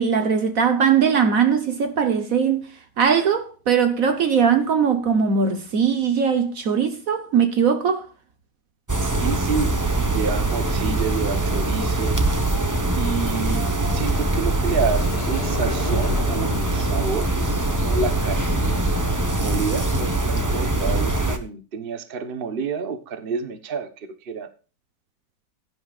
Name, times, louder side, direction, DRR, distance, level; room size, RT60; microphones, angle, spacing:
voice 1, 0.0-2.7 3.0-8.1, right 7 dB, 55° right, 1.3 m, -20 dB
sound 1, 8.9-21.4, right 2 dB, 15° right, 0.8 m, -23 dB
voice 2, 9.0-12.2 13.0-13.7 13.9-18.9 19.4-24.5, right 5 dB, 35° right, 1.1 m, -29 dB
Sliding door, 14.7-20.6, left 6 dB, 75° left, 1.6 m, -35 dB
16.5 x 9.8 x 2.4 m
omnidirectional pair, 1.9 m